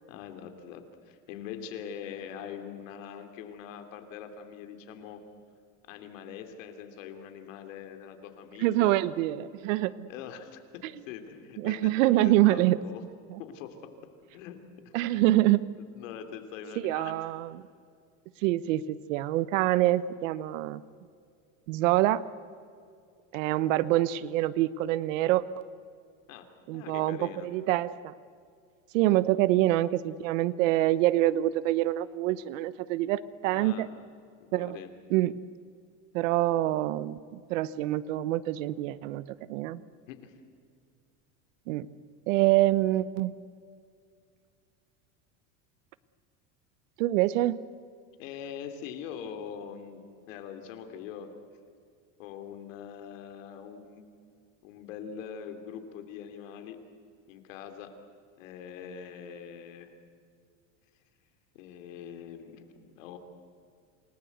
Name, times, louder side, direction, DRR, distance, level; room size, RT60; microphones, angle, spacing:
voice 1, 0.1-5.2 5.9-9.2 10.1-13.0 13.4-13.8 14.3-14.6 14.8-15.2 15.9-17.3 26.3-27.5 33.5-33.9 34.4-34.9 40.1-40.3 48.2-51.3 52.2-54.0 54.6-56.8 57.3-57.9 58.4-59.9 61.5-62.7 62.9-63.2, left 8 dB, 85° left, 7 dB, 3.1 m, -43 dB
voice 2, 8.6-10.1 11.6-12.8 13.3-13.4 14.9-15.6 16.8-17.6 18.4-20.8 21.7-22.2 23.3-25.7 26.7-28.1 28.9-33.9 34.5-34.8 35.1-35.4 36.1-39.8 41.7-41.9 42.3-43.3 47.0-47.6, right 15 dB, 85° right, 16 dB, 1.0 m, -26 dB
28.5 x 19.0 x 8.1 m, 2.3 s
cardioid pair, 155°, 38 cm